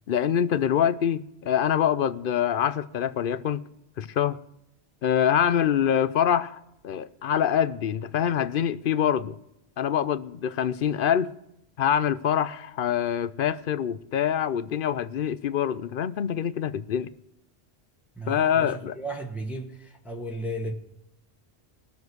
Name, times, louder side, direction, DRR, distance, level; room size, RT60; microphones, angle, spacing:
voice 1, 0.1-3.6 4.0-4.4 5.0-9.4 9.8-11.3 11.8-17.1 18.3-18.9, left 9 dB, 60° left, 0.7 m, -25 dB
voice 2, 18.1-20.7, right 1 dB, ahead, 1.4 m, -34 dB
20.5 x 6.9 x 4.7 m
omnidirectional pair, 1.1 m